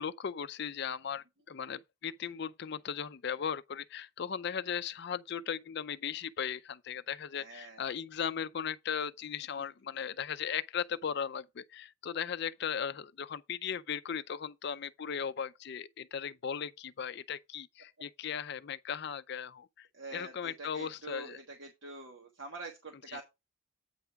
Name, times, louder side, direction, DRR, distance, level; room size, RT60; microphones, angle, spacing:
voice 1, 0.0-21.4 23.1-23.2, left 7 dB, 55° left, 0.4 m, -37 dB
voice 2, 7.3-7.9 19.9-23.2, right 3 dB, 65° right, 1.4 m, -46 dB
8.9 x 3.5 x 5.7 m
head